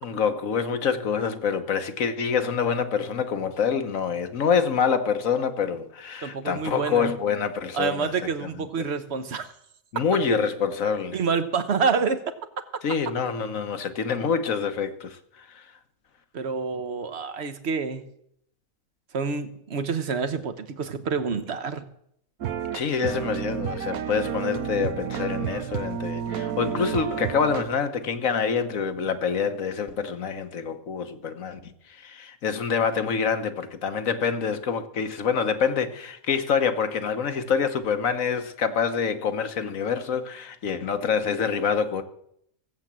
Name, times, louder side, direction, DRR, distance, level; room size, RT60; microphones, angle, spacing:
voice 1, 0.0-8.9 9.9-11.2 12.8-15.7 22.7-42.0, left 6 dB, 70° left, 1.5 m, -26 dB
voice 2, 6.2-7.1 7.7-9.5 11.1-12.2 16.3-18.0 19.1-21.8, right 5 dB, 50° right, 1.3 m, -27 dB
sound 1, 22.4-27.6, right 8 dB, 80° right, 1.4 m, -30 dB
17.0 x 8.1 x 7.5 m
omnidirectional pair, 1.5 m